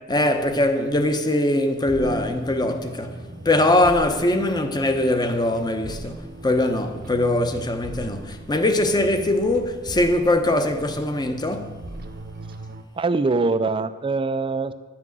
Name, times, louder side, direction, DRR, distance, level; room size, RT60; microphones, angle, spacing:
voice 1, 0.1-11.7, left 1 dB, 20° left, 0.8 m, -22 dB
sound 1, 1.8-12.8, right 2 dB, 50° right, 0.8 m, -39 dB
voice 2, 13.0-14.7, right 3 dB, 25° right, 0.4 m, -23 dB
11.0 x 6.0 x 7.6 m
head